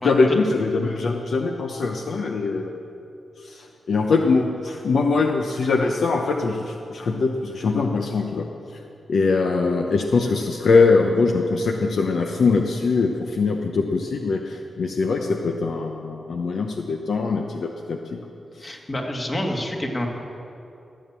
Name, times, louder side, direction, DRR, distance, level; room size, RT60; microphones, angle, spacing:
voice 1, 0.0-2.7 3.4-8.8 9.1-18.2 18.6-18.7, left 4 dB, 75° left, 3 dB, 0.7 m, -22 dB
voice 2, 18.6-20.1, left 1 dB, 30° left, 1 dB, 2.0 m, -27 dB
15.0 x 7.3 x 7.3 m, 2.7 s
cardioid pair, 75°, 0 cm